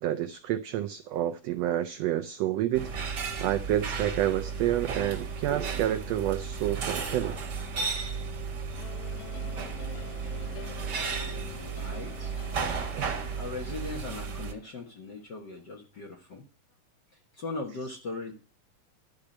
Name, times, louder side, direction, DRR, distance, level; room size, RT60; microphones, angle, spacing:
voice 1, 0.0-2.9 3.4-7.4 13.0-13.1, right 12 dB, 85° right, 1.4 m, -29 dB
sound 1, 2.7-14.5, right 5 dB, 45° right, 1.5 m, -34 dB
sound 2, 8.8-15.0, left 13 dB, 75° left, 1.8 m, -47 dB
voice 2, 11.8-12.4 13.4-16.4 17.3-18.3, left 3 dB, 50° left, 1.3 m, -39 dB
12.0 x 4.9 x 8.6 m
omnidirectional pair, 3.7 m